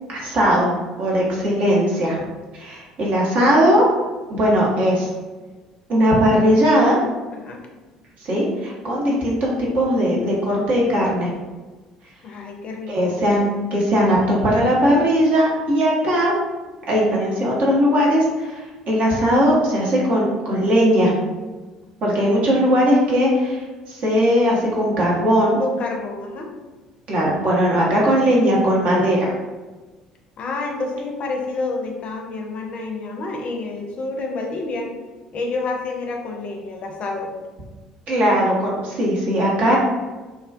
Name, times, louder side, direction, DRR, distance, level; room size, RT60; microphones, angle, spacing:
voice 1, 0.1-0.7 1.0-2.2 2.5-3.9 4.3-5.1 5.9-7.0 8.3-11.3 12.9-13.4 13.7-16.3 16.9-21.1 22.0-25.6 27.1-29.3 38.1-39.8, equal, 50° right, -4 dB, 0.7 m, -18 dB
voice 2, 12.2-13.2 25.6-26.5 30.4-34.9 35.3-37.3, left 3 dB, 45° left, 1 dB, 0.5 m, -28 dB
2.3 x 2.2 x 2.4 m, 1.3 s
figure-of-eight pair, 55°, 3 cm